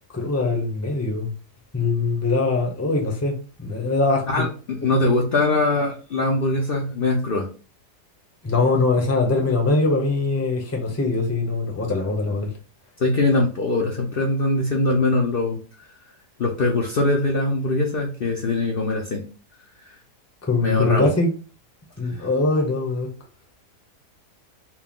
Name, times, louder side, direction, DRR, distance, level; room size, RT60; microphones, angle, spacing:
voice 1, 0.1-1.3 1.7-4.4 8.4-12.5 20.4-21.3 22.0-23.1, left 3 dB, 15° left, 0.6 m, -22 dB
voice 2, 4.3-7.5 13.0-15.9 16.4-19.3 19.9-20.0 20.5-21.1 22.1-22.3, left 2 dB, 55° left, 0.6 m, -22 dB
4.4 x 2.1 x 3.6 m
omnidirectional pair, 1.8 m